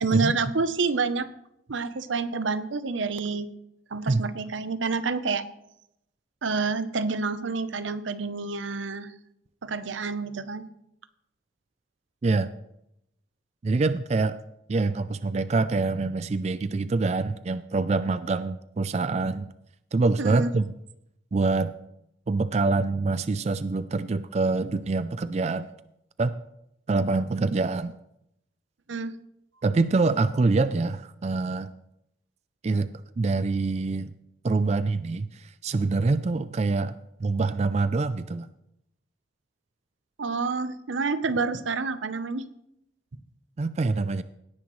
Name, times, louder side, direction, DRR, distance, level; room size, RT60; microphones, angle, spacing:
voice 1, 0.0-1.3 1.7-3.5 3.9-5.4 6.4-9.1 9.6-10.6 20.2-20.5 28.9-29.1 40.2-42.4, right 4 dB, 85° right, 12 dB, 0.8 m, -28 dB
voice 2, 13.6-14.4 14.7-19.5 19.9-20.7 21.3-21.7 22.3-25.7 26.2-26.4 26.9-27.9 29.6-31.7 32.6-32.9 33.2-34.1 34.4-38.5 43.6-44.2, right 3 dB, 35° right, 13 dB, 0.3 m, -25 dB
17.5 x 10.0 x 3.1 m, 0.80 s
head